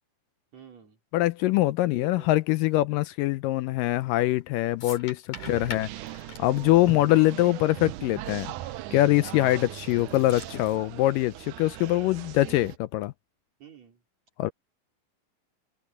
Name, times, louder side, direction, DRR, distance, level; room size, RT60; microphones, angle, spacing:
voice 1, 0.5-1.0 1.8-2.3 5.4-5.8 13.6-14.0, right 8 dB, 45° right, 5.3 m, -48 dB
voice 2, 1.1-5.9 6.4-8.5 8.9-13.1 14.4-14.5, left 16 dB, 80° left, 2.1 m, -23 dB
sound 1, 4.2-4.4 4.8-7.8 8.1-8.2 8.9-9.3 9.7-10.8, left 5 dB, 55° left, 6.1 m, -42 dB
sound 2, 5.3-12.8, right 15 dB, 75° right, 1.9 m, -40 dB
omnidirectional pair, 4.2 m